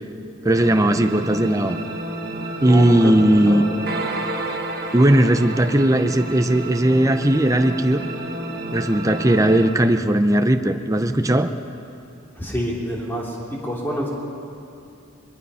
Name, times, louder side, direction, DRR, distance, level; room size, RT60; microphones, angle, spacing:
voice 1, 0.4-1.8 2.6-3.6 4.9-8.0 8.7-11.5, right 1 dB, 15° right, 7 dB, 0.7 m, -17 dB
sound 1, 0.5-9.7, right 1 dB, 50° right, 1.9 m, -30 dB
voice 2, 2.6-3.1 3.5-3.6 12.3-14.1, equal, 10° left, -3 dB, 3.1 m, -27 dB
22.0 x 21.0 x 5.7 m, 2.6 s
head